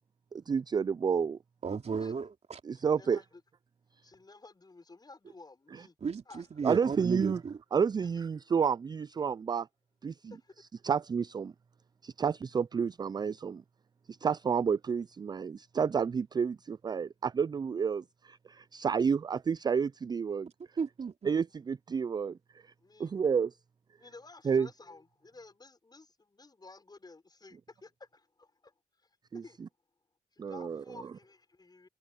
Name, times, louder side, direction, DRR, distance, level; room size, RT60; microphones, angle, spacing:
voice 1, 0.3-1.4 2.7-3.2 5.7-5.8 6.6-7.4 7.7-9.7 10.0-10.3 10.8-11.5 12.0-13.6 14.2-20.5 21.3-22.4 23.0-23.5 24.4-24.7 29.3-29.4 30.4-30.8, right 6 dB, 30° right, 0.3 m, -30 dB
voice 2, 1.6-2.6 6.0-7.6 20.8-21.4, right 5 dB, 45° right, 2.9 m, -34 dB
voice 3, 2.8-3.4 4.0-5.9 6.3-6.4 8.2-8.3 10.3-10.5 22.8-23.1 24.0-28.7 29.3-29.6 30.3-31.9, left 3 dB, 25° left, 6.0 m, -53 dB
cardioid pair, 65°, 15 cm